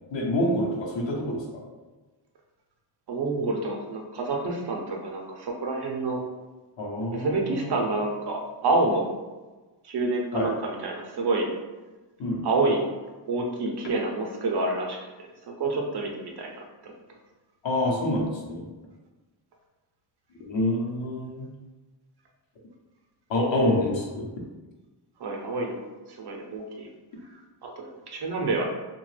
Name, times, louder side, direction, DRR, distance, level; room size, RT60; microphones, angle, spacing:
voice 1, 0.1-1.6 6.8-7.8 10.3-10.5 12.2-12.4 17.6-18.7 20.4-21.5 23.3-24.3, left 1 dB, 80° left, -1 dB, 0.8 m, -27 dB
voice 2, 3.1-6.2 7.1-9.1 9.8-11.5 12.4-12.8 13.3-15.0 15.5-16.5 16.8-16.9 25.2-25.8 26.1-26.9 27.3-28.6, right 2 dB, 60° right, 1 dB, 0.6 m, -28 dB
2.8 x 2.2 x 3.2 m, 1.2 s
wide cardioid pair, 150°, 44 cm